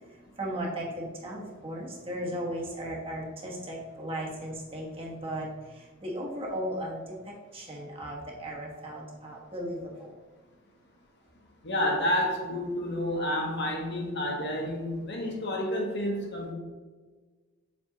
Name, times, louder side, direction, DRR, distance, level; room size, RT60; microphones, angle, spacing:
voice 1, 0.4-10.1, equal, 25° right, -2 dB, 1.2 m, -36 dB
voice 2, 11.6-16.5, left 1 dB, 55° left, 0 dB, 1.4 m, -30 dB
7.3 x 3.5 x 3.8 m, 1.4 s
head